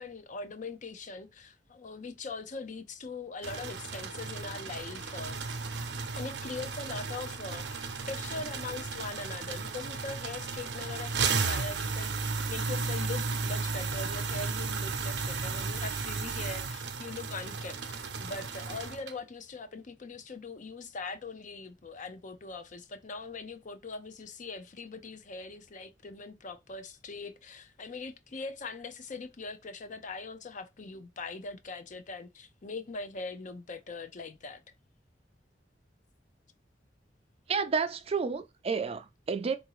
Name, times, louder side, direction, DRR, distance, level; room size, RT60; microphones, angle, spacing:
voice 1, 0.0-5.4 6.2-17.8 18.2-34.6, left 3 dB, 45° left, 0.6 m, -41 dB
sound 1, 3.4-19.1, right 4 dB, 85° right, 0.7 m, -34 dB
voice 2, 37.5-39.6, right 5 dB, 35° right, 0.4 m, -30 dB
3.8 x 2.6 x 4.7 m
head